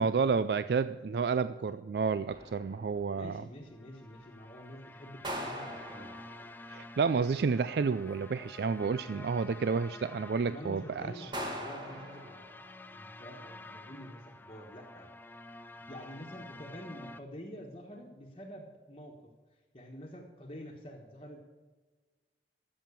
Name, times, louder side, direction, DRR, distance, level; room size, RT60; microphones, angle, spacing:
voice 1, 0.0-3.4 6.7-11.3, right 5 dB, 65° right, 14 dB, 0.4 m, -30 dB
sound 1, 2.3-3.2 5.2-6.8 11.3-12.9, equal, 25° right, 1.9 m, -41 dB
voice 2, 3.1-6.2 10.5-12.5 12.9-15.1 15.7-19.2 19.5-21.4, equal, 30° left, 0 dB, 1.4 m, -47 dB
sound 2, 3.7-17.2, left 2 dB, 10° left, 0.4 m, -50 dB
14.0 x 7.7 x 6.9 m, 1.3 s
head